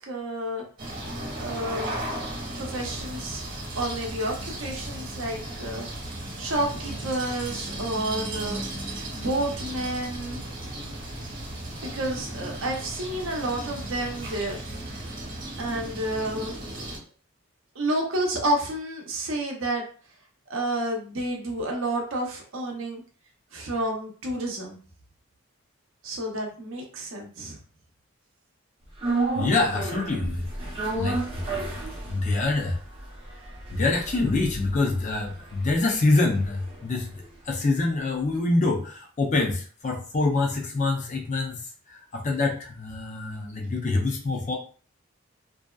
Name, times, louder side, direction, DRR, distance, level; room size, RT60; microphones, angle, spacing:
voice 1, 0.1-0.6 1.3-2.0 2.6-3.4 3.7-5.9 6.4-8.6 9.1-10.4 11.8-14.6 15.6-16.5 17.8-19.8 20.5-23.0 23.5-24.8 26.0-27.6, right 1 dB, 65° right, 0 dB, 0.7 m, -30 dB
sound 1, 0.8-17.0, right 1 dB, 40° right, 1.0 m, -35 dB
sound 2, 29.0-37.3 37.6-37.7, right 2 dB, 25° right, 0.6 m, -33 dB
voice 2, 29.3-30.4 31.0-31.4 32.1-32.8 33.7-41.6 41.9-44.5, left 2 dB, 35° left, 1 dB, 0.4 m, -25 dB
2.6 x 2.2 x 2.2 m, 0.41 s
head